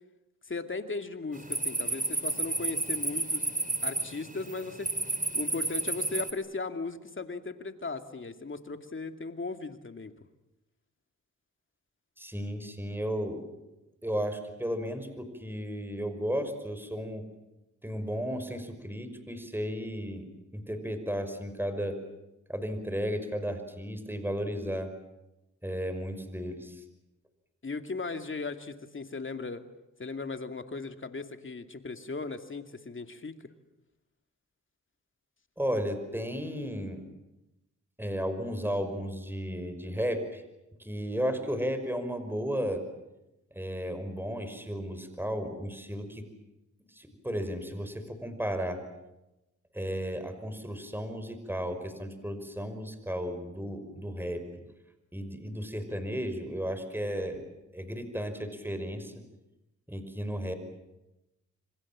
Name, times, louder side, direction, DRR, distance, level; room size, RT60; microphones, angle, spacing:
voice 1, 0.4-3.5 3.8-4.9 5.3-10.1 27.6-29.6 30.0-33.4, left 3 dB, 40° left, 7 dB, 2.6 m, -37 dB
sound 1, 1.3-6.3, right 2 dB, 25° right, 4.2 m, -31 dB
voice 2, 12.2-13.5 14.0-17.2 17.8-20.3 20.5-22.0 22.5-24.9 25.6-26.8 35.6-37.0 38.0-40.4 40.8-42.8 43.5-46.3 46.9-48.8 49.7-54.6 55.1-57.4 57.7-59.2 59.9-60.5, equal, 5° right, 9 dB, 5.6 m, -34 dB
27.5 x 25.5 x 7.5 m, 0.95 s
cardioid pair, 55°, 31 cm